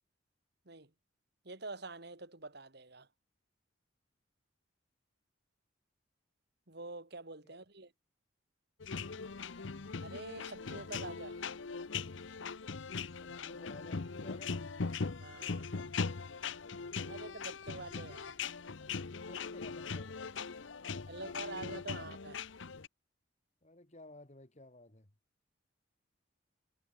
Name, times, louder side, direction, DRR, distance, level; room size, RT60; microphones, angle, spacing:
voice 1, 1.4-3.1 6.7-7.9 10.0-11.4 15.2-15.6 17.0-18.4 21.1-22.4, right 3 dB, 55° right, 2.4 m, -46 dB
sound 1, 8.8-22.9, left 5 dB, 70° left, 0.8 m, -40 dB
voice 2, 13.2-14.6 15.4-15.5 17.1-17.2 17.5-17.6 19.1-21.4 23.6-25.1, left 2 dB, 35° left, 2.0 m, -56 dB
head